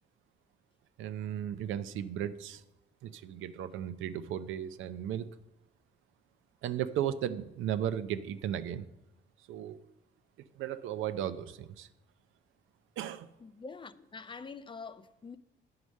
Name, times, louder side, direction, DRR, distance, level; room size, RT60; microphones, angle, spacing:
voice 1, 1.0-2.6 3.0-5.3 6.6-8.8 9.5-9.8 10.6-11.9 13.0-13.3, right 10 dB, 80° right, 0.6 m, -35 dB
voice 2, 13.4-15.4, left 4 dB, 25° left, 0.4 m, -45 dB
9.5 x 4.8 x 6.3 m
cardioid pair, 90°, 20 cm